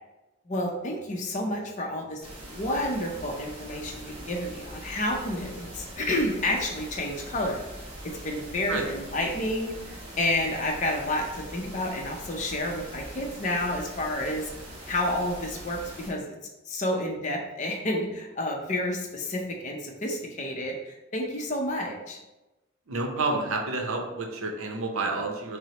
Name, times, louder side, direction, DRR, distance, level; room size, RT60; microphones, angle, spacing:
voice 1, 0.5-7.6 8.2-14.5 14.9-16.3 16.7-22.2, left 1 dB, 35° left, 0 dB, 0.5 m, -30 dB
sound 1, 2.2-16.1, right 1 dB, 25° right, 0.7 m, -42 dB
voice 2, 22.9-25.6, right 3 dB, 75° right, 2 dB, 0.6 m, -29 dB
5.9 x 2.0 x 2.8 m, 1.0 s
head